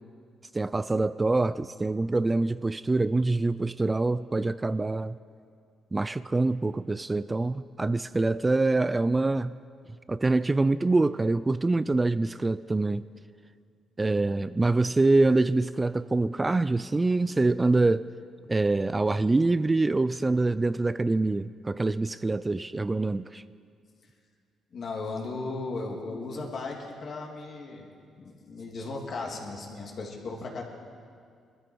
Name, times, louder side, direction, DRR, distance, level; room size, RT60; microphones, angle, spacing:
voice 1, 0.5-5.2 5.9-9.6 10.1-13.0 14.0-18.1 18.5-23.4, right 2 dB, 20° right, 15 dB, 0.3 m, -25 dB
voice 2, 24.7-27.9 28.2-30.6, left 3 dB, 55° left, -1 dB, 2.8 m, -36 dB
21.5 x 13.5 x 4.6 m, 2.2 s
cardioid pair, 90°, 0 cm